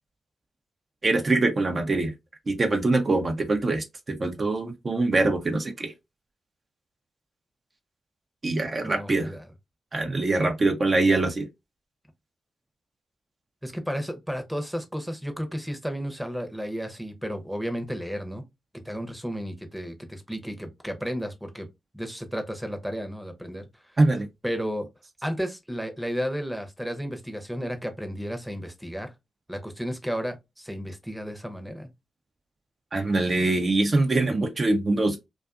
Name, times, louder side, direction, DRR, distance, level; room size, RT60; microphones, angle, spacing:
voice 1, 1.0-2.1 2.5-5.9 8.4-9.3 9.9-11.5 24.0-24.3 32.9-35.2, right 2 dB, 45° right, 0.5 m, -23 dB
voice 2, 8.8-9.5 13.6-18.4 18.7-21.7 21.9-23.7 24.4-24.9 25.2-29.1 29.5-31.9, equal, 5° right, 0.7 m, -33 dB
2.5 x 2.4 x 2.4 m
supercardioid pair, 40°, 0 cm